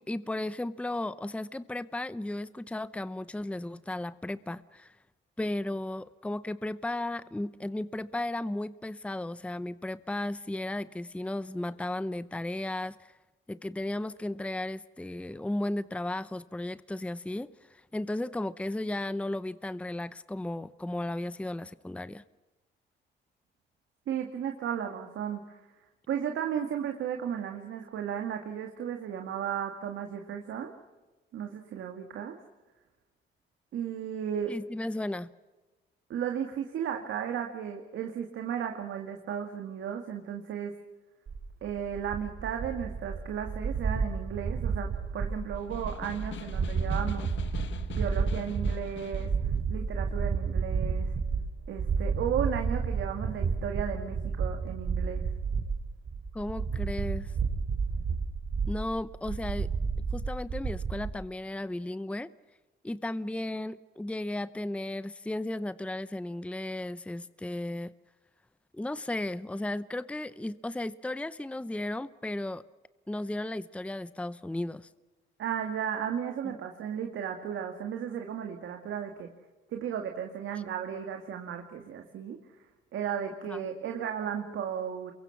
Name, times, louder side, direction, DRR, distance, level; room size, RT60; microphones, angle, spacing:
voice 1, 0.0-5.0 5.4-13.1 13.5-22.2 34.5-35.3 56.3-57.3 58.7-59.7 60.1-62.3 62.8-67.9 68.7-72.6 73.1-74.9 83.5-83.6, left 1 dB, 5° left, 15 dB, 0.7 m, -35 dB
voice 2, 24.1-25.6 26.1-30.7 31.3-32.4 33.7-34.6 36.1-40.7 41.6-47.3 47.9-49.3 49.7-51.1 51.7-55.3 75.4-79.3 79.7-82.4 82.9-85.1, right 8 dB, 75° right, 4 dB, 2.3 m, -34 dB
sound 1, 41.3-61.1, right 5 dB, 50° right, 3.5 m, -31 dB
Snare drum, 45.6-49.4, left 9 dB, 70° left, 1.7 m, -44 dB
28.0 x 23.0 x 6.0 m, 1.2 s
cardioid pair, 90°, 20 cm